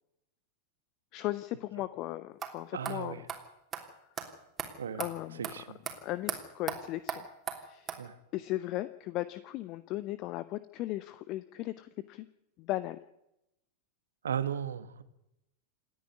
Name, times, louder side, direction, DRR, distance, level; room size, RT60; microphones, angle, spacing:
voice 1, 1.1-3.3 5.0-5.5 6.0-7.2 7.6-8.0 8.3-12.3 12.6-13.0, left 16 dB, 40° left, 15 dB, 0.7 m, -37 dB
sound 1, 2.4-2.5 2.8-3.0 3.3-3.4 3.7-3.8 4.2-4.3 4.6-4.7 5.0-5.1 5.4-5.5 5.8-5.9 6.3-6.4 6.7-6.8 7.1-7.2 7.5-7.6 7.9-8.0, right 8 dB, 20° right, 3.2 m, -35 dB
voice 2, 2.7-3.2 4.8-5.1 5.4-5.8 8.0-8.2 14.2-15.0, right 8 dB, 65° right, 12 dB, 1.5 m, -36 dB
28.0 x 9.8 x 9.8 m, 0.87 s
figure-of-eight pair, 90°, 0 cm